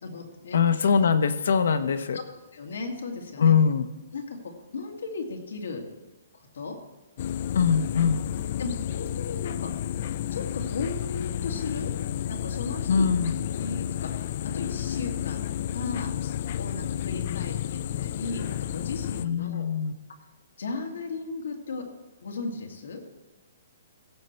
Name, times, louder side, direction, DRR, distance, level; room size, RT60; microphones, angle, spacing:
voice 1, 0.0-0.6 2.1-2.2 2.5-3.5 4.1-4.4 4.7-5.8 6.3-6.7 8.6-9.7 10.3-11.9 12.3-13.1 13.6-16.1 16.6-19.7 20.6-21.8 22.2-23.0, left 4 dB, 90° left, 2 dB, 2.3 m, -36 dB
voice 2, 0.5-2.2 3.4-3.9 7.5-8.2 12.9-13.4 19.2-19.9, left 6 dB, 65° left, 11 dB, 0.9 m, -22 dB
sound 1, 7.2-19.3, left 10 dB, 35° left, 0.3 m, -31 dB
16.0 x 6.8 x 4.4 m, 1.2 s
hypercardioid pair, 175°, 0 cm